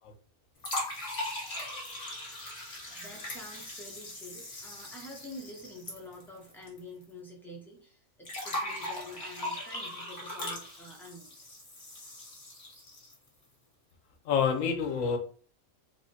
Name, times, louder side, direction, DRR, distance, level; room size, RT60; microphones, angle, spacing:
sound 1, 0.6-6.8 7.0-7.1 8.3-13.3, left 1 dB, 35° left, 0.9 m, -39 dB
voice 1, 2.9-11.3, left 1 dB, 5° left, 0.3 m, -47 dB
voice 2, 14.2-15.2, left 6 dB, 75° left, 0.9 m, -27 dB
3.4 x 2.1 x 2.6 m
omnidirectional pair, 1.4 m